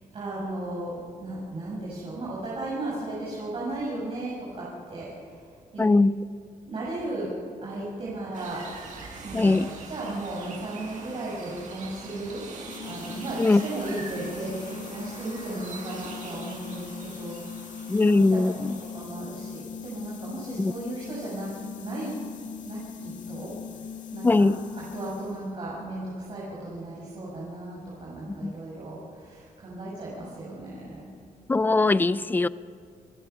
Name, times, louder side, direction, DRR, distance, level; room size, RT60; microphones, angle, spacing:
voice 1, 0.1-5.9 6.7-7.3 7.6-8.9 9.2-12.4 12.8-18.5 18.8-21.5 21.8-22.2 22.6-23.5 24.1-24.5 24.7-31.1, right 2 dB, 40° right, -6 dB, 6.2 m, -35 dB
voice 2, 5.8-6.1 9.3-9.7 13.4-13.6 17.9-18.8 20.6-20.7 24.2-24.6 28.3-28.5 31.5-32.5, left 3 dB, 15° left, 16 dB, 0.5 m, -21 dB
sound 1, 8.3-19.0, right 4 dB, 60° right, 6.9 m, -43 dB
sound 2, 12.6-25.6, left 7 dB, 60° left, 2.1 m, -40 dB
28.0 x 21.5 x 5.7 m, 2.1 s
wide cardioid pair, 165°, 14 cm